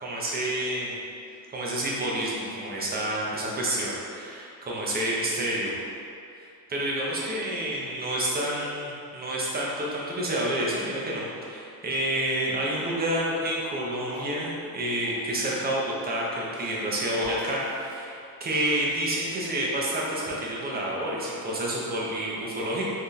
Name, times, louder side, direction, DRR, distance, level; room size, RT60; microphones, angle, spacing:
voice 1, 0.0-1.0 1.5-5.7 6.4-22.8, right 1 dB, 25° right, -4 dB, 0.6 m, -29 dB
sound 1, 13.0-15.3 16.2-18.5, equal, 60° right, 1.2 m, -42 dB
3.5 x 2.7 x 2.3 m, 2.5 s
cardioid pair, 125°, 38 cm